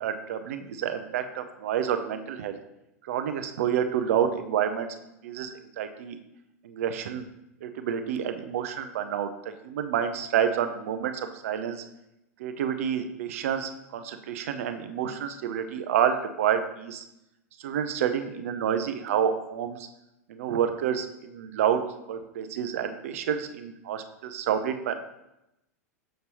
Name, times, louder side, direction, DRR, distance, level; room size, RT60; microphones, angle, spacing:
voice 1, 0.0-2.6 3.1-4.9 5.2-6.2 6.6-7.2 7.6-9.3 9.6-11.8 12.4-17.0 17.6-19.8 20.3-21.8 22.1-24.9, right 9 dB, 60° right, 8 dB, 0.6 m, -28 dB
6.7 x 6.5 x 2.9 m, 0.87 s
figure-of-eight pair, 90°, 9 cm